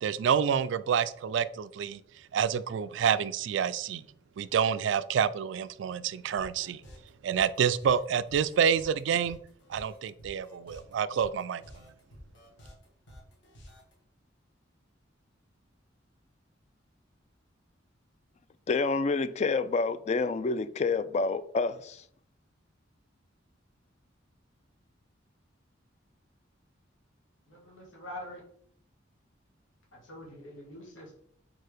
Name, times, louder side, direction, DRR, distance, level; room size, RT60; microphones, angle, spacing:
voice 1, 0.0-2.0 2.3-4.1 4.4-6.8 7.2-9.4 9.7-11.8, right 7 dB, 70° right, 0.3 m, -28 dB
sound 1, 6.3-13.9, equal, 65° left, 1.8 m, -51 dB
voice 2, 18.7-22.0, left 4 dB, 35° left, 0.3 m, -28 dB
voice 3, 27.5-28.4 29.9-31.2, left 1 dB, 90° left, 2.2 m, -45 dB
4.6 x 4.2 x 4.9 m
head